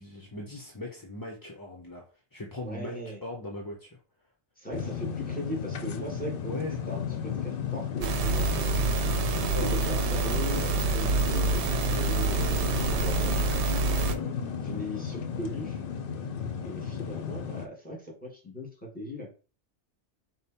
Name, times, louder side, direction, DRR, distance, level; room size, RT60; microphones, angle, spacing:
voice 1, 0.0-2.0 2.3-4.0 6.4-6.8 9.5-9.7 14.1-14.4, left 2 dB, 25° left, 0 dB, 0.6 m, -39 dB
voice 2, 2.6-3.2 4.6-8.9 9.3-13.4 14.6-15.8 16.6-19.3, equal, 5° left, -1 dB, 1.8 m, -39 dB
sound 1, 4.7-17.7, left 6 dB, 55° left, 0.7 m, -34 dB
sound 2, 8.0-14.1, right 3 dB, 70° right, 0.9 m, -27 dB
5.2 x 2.2 x 4.2 m, 0.36 s
omnidirectional pair, 1.2 m